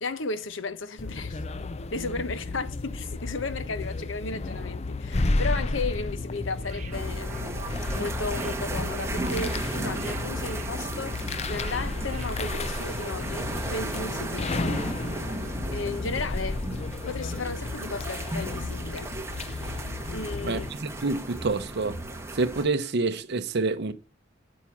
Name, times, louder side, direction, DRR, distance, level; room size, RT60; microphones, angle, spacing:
voice 1, 0.0-1.4 1.9-14.6 15.7-16.6 17.1-19.1 20.1-20.6, left 3 dB, 75° left, 1.0 m, -34 dB
sound 1, 1.0-20.7, left 2 dB, 35° left, 0.5 m, -33 dB
sound 2, 6.6-13.2 13.5-13.6, right 4 dB, 40° right, 1.3 m, -46 dB
sound 3, 6.9-22.7, right 2 dB, 15° right, 1.3 m, -35 dB
voice 2, 20.4-22.0 22.3-23.9, right 3 dB, 60° right, 0.7 m, -27 dB
9.4 x 6.1 x 7.2 m
head